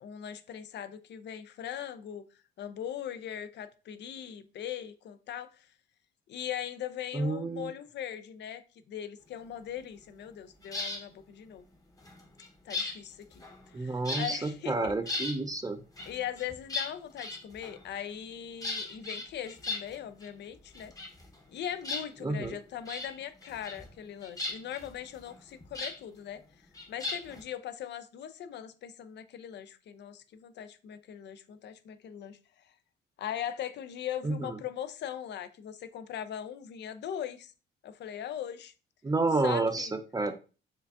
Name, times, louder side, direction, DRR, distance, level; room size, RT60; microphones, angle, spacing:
voice 1, 0.0-2.2 2.6-5.7 6.3-8.6 8.9-11.7 12.6-13.4 13.7-14.9 16.0-20.9 21.5-26.4 26.9-32.4 33.2-37.5 37.8-38.7 39.4-39.9, left 10 dB, 60° left, 0.4 m, -40 dB
voice 2, 7.1-7.7 13.7-15.8 22.2-22.6 34.2-34.6 39.0-40.3, right 3 dB, 20° right, 0.4 m, -30 dB
sound 1, 10.6-11.0 12.0-13.8 14.1-14.5 14.9-15.4 16.0-17.9 18.6-20.3 20.6-21.5 21.8-22.5 22.9-23.1 23.4-23.9 24.2-26.0 26.7-27.4, left 3 dB, 15° left, 0.8 m, -37 dB
4.5 x 2.5 x 2.4 m
cardioid pair, 90°, 20 cm